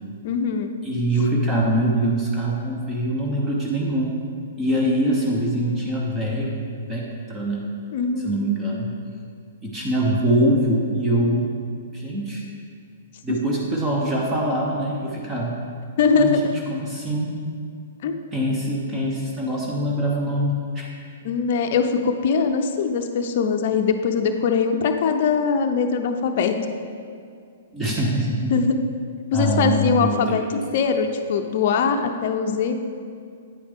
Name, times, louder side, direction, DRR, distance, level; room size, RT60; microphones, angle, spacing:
voice 1, 0.2-0.7 7.9-8.3 16.0-16.4 18.0-18.1 21.2-26.6 28.5-28.8 29.3-32.8, left 5 dB, 55° left, 5 dB, 0.5 m, -21 dB
voice 2, 0.8-4.2 4.6-6.5 6.9-7.7 8.2-8.9 9.6-11.5 11.9-12.4 13.2-15.6 16.1-16.4 16.7-17.3 18.3-20.9 27.7-28.5 29.3-30.6, right 1 dB, 15° right, -3 dB, 0.9 m, -23 dB
8.8 x 4.9 x 3.6 m, 2.3 s
hypercardioid pair, 130°, 0 cm